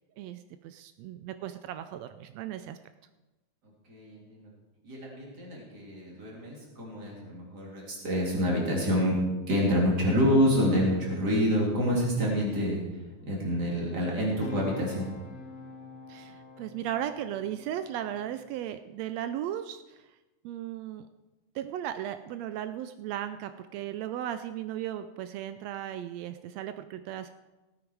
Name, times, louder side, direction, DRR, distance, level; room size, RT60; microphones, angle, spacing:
voice 1, 0.2-2.8 16.1-20.1 20.4-21.1 21.5-27.3, right 11 dB, 90° right, 10 dB, 1.5 m, -36 dB
voice 2, 3.9-4.5 4.8-9.2 9.5-12.8 13.3-15.1, equal, 30° right, -3 dB, 3.6 m, -27 dB
sound 1, 13.2-18.6, left 3 dB, 30° left, 2.3 m, -46 dB
18.5 x 8.7 x 4.7 m, 1.1 s
omnidirectional pair, 3.6 m